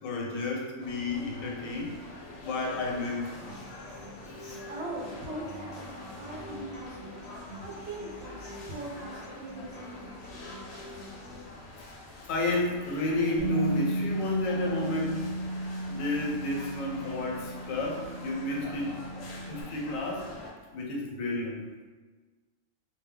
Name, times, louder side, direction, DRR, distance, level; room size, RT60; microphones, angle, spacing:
voice 1, 0.0-1.9 2.4-3.5 4.4-4.6 12.3-15.3 15.9-19.0 19.5-20.3 20.7-21.7, left 2 dB, 90° left, -1 dB, 1.0 m, -31 dB
sound 1, 0.8-20.5, left 2 dB, 65° left, 0.7 m, -46 dB
Human voice / Acoustic guitar, 3.5-11.5, left 1 dB, 30° left, 0.7 m, -47 dB
voice 2, 4.7-10.2, right 1 dB, 60° right, -4 dB, 0.7 m, -41 dB
Bass guitar, 13.4-19.6, right 2 dB, 15° right, 0.5 m, -34 dB
2.2 x 2.1 x 3.6 m, 1.3 s
omnidirectional pair, 1.4 m